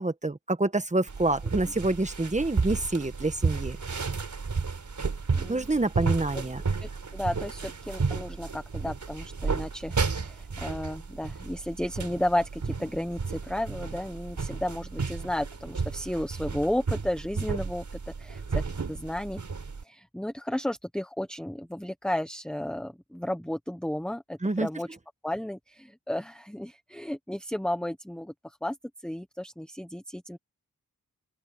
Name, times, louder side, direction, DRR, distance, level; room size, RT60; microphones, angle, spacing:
voice 1, 0.0-3.8 5.5-6.6 24.4-24.7, right 2 dB, 20° right, 1.3 m, -27 dB
sound 1, 1.1-19.8, right 4 dB, 55° right, 4.1 m, -32 dB
voice 2, 5.3-5.9 6.8-17.8 18.2-18.6 18.9-19.4 19.8-24.9 25.2-28.8 29.0-30.4, left 1 dB, ahead, 1.2 m, -33 dB
open air
wide cardioid pair, 105°, 34 cm